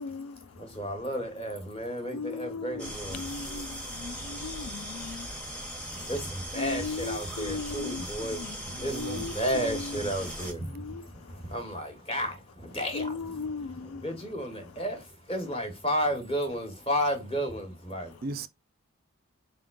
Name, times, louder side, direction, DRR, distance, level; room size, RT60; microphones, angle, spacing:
voice 1, 0.0-1.0 1.9-6.1 6.5-10.3 10.6-11.6 12.9-14.1 18.0-18.2, left 4 dB, 75° left, 0.3 m, -39 dB
voice 2, 0.6-3.3 5.9-13.2 14.0-18.2, equal, 25° left, 1.2 m, -33 dB
sound 1, 2.8-10.5, right 1 dB, 5° left, 0.9 m, -39 dB
voice 3, 8.8-9.7 18.2-18.5, right 4 dB, 45° right, 0.3 m, -38 dB
4.6 x 3.6 x 2.4 m
head